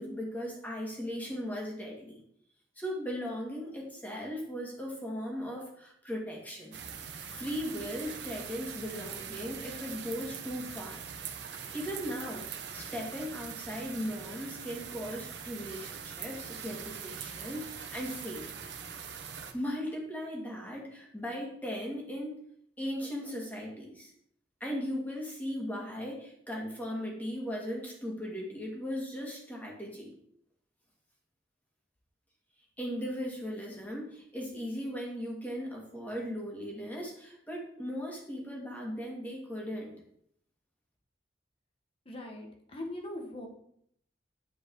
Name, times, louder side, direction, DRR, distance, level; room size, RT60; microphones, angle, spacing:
voice 1, 0.0-2.2 2.8-6.8 7.3-11.0 11.7-12.4 12.7-18.7 19.5-22.4 22.8-24.1 24.6-30.1 32.8-40.0, equal, 10° left, -2 dB, 2.3 m, -38 dB
sound 1, 6.7-19.5, right 7 dB, 70° right, 0.9 m, -42 dB
voice 2, 42.1-43.5, left 1 dB, 35° left, 1 dB, 1.7 m, -41 dB
9.5 x 5.3 x 4.8 m, 0.70 s
head